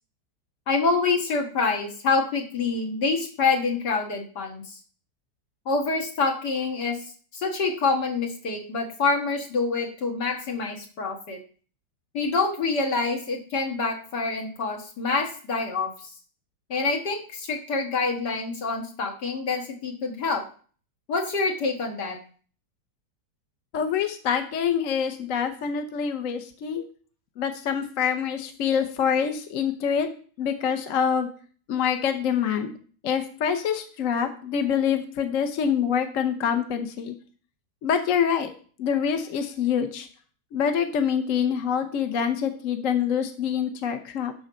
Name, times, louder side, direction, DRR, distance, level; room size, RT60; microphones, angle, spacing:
voice 1, 0.7-4.8 5.7-7.0 7.3-11.4 12.1-16.1 16.7-20.4 21.1-22.2 26.8-26.9, left 4 dB, 75° left, 1 dB, 2.2 m, -26 dB
voice 2, 23.7-26.8 27.4-30.1 30.4-31.3 31.7-32.7 33.0-37.1 37.8-38.5 38.8-40.1 40.5-44.3, left 7 dB, 55° left, 6 dB, 1.2 m, -25 dB
11.0 x 4.0 x 6.2 m, 0.42 s
omnidirectional pair, 1.8 m